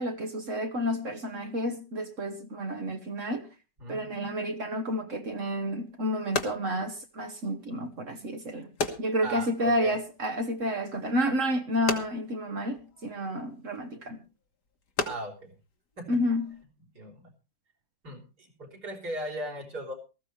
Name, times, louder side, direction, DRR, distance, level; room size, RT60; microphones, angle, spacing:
voice 1, 0.0-3.5 3.9-8.7 9.0-14.2 16.1-16.5, equal, 50° right, 5 dB, 1.5 m, -30 dB
voice 2, 3.8-4.2 9.2-9.9 15.0-15.5 16.0-16.1 16.9-17.3 18.0-20.0, right 1 dB, 65° right, -2 dB, 4.6 m, -38 dB
sound 1, 5.3-16.7, left 4 dB, 65° left, 2.1 m, -39 dB
18.5 x 14.5 x 3.2 m, 0.32 s
omnidirectional pair, 1.9 m